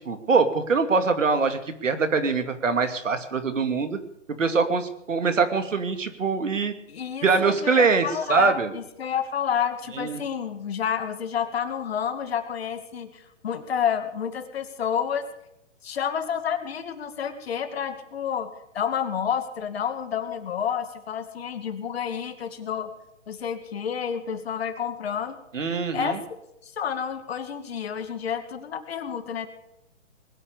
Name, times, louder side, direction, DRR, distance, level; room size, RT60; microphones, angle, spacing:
voice 1, 0.0-4.0 4.4-6.7 7.2-8.7 9.9-10.2 25.5-26.2, right 4 dB, 80° right, 8 dB, 2.5 m, -23 dB
voice 2, 6.9-15.3 15.8-22.9 23.3-25.4 25.9-26.2 26.6-29.5, left 8 dB, 55° left, 8 dB, 2.4 m, -29 dB
20.5 x 10.0 x 6.8 m, 0.80 s
hypercardioid pair, 150°, 37 cm